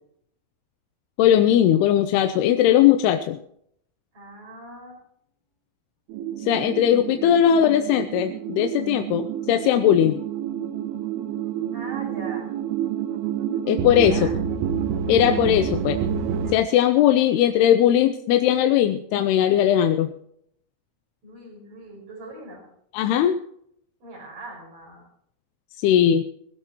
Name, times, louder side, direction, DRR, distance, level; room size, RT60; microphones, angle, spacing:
voice 1, 1.2-3.4 6.4-10.2 13.7-14.2 15.1-16.0 16.5-20.1 22.9-23.4 25.8-26.2, left 10 dB, 85° left, 8 dB, 2.7 m, -19 dB
voice 2, 4.1-5.0 11.7-12.5 13.9-14.3 21.2-22.6 24.0-25.0, right 2 dB, 60° right, -4 dB, 7.3 m, -41 dB
sound 1, 6.1-16.6, right 8 dB, 80° right, 3.1 m, -28 dB
21.5 x 16.0 x 3.0 m, 0.70 s
omnidirectional pair, 4.6 m